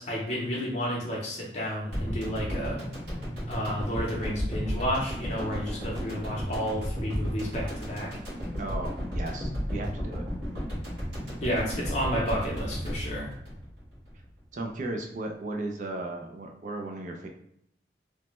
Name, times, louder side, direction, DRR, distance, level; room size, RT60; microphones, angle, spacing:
voice 1, 0.0-2.8 3.5-8.1 11.4-13.3, equal, 40° left, -4 dB, 0.6 m, -31 dB
sound 1, 1.9-14.3 14.5-14.6, equal, 70° right, 1.4 m, -33 dB
voice 2, 8.6-10.2 14.5-17.3, right 2 dB, 45° right, 2 dB, 0.4 m, -35 dB
3.1 x 2.1 x 3.0 m, 0.71 s
head